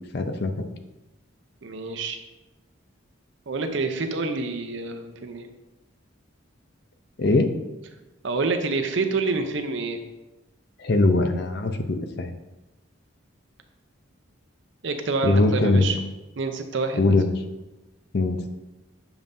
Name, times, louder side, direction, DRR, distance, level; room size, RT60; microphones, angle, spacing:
voice 1, 0.1-0.5 7.2-7.5 10.8-12.3 15.2-15.9 17.0-17.3 18.1-18.5, left 2 dB, 50° left, 8 dB, 0.5 m, -21 dB
voice 2, 1.6-2.2 3.5-5.5 8.2-10.0 14.8-16.0 16.4-17.0, right 3 dB, 60° right, 6 dB, 0.6 m, -27 dB
7.0 x 5.3 x 2.6 m, 1.1 s
head